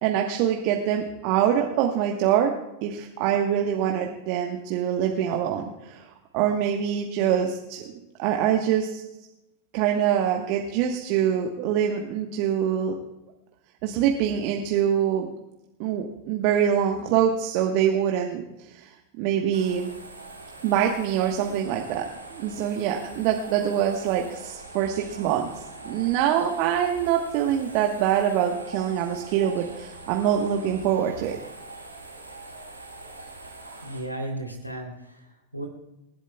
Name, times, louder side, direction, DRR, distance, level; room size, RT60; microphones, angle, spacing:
voice 1, 0.0-7.8 8.2-9.0 9.7-12.9 13.8-15.3 15.8-19.9 20.6-22.0 22.3-31.4, right 9 dB, 45° right, 2 dB, 1.3 m, -24 dB
sound 1, 19.5-34.0, right 2 dB, 85° right, 2.5 m, -43 dB
voice 2, 33.8-35.7, right 1 dB, 90° left, 3 dB, 3.3 m, -35 dB
27.5 x 11.5 x 2.4 m, 0.95 s
figure-of-eight pair, 90°, 0 cm